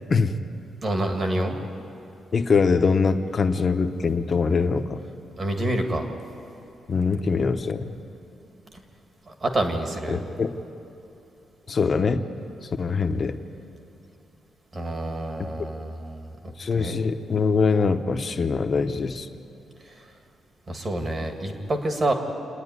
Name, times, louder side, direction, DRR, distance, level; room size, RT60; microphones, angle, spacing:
voice 1, 0.8-1.6 5.4-6.1 9.3-10.2 14.7-16.3 16.7-17.0 19.9-20.0 20.7-22.1, right 1 dB, 30° right, 4 dB, 1.7 m, -27 dB
voice 2, 2.3-5.0 6.9-7.9 10.1-10.5 11.7-12.2 12.8-13.4 15.4-15.5 16.6-19.3, left 4 dB, 30° left, 8 dB, 0.8 m, -23 dB
28.0 x 10.0 x 9.6 m, 2.8 s
wide cardioid pair, 175°, 0 cm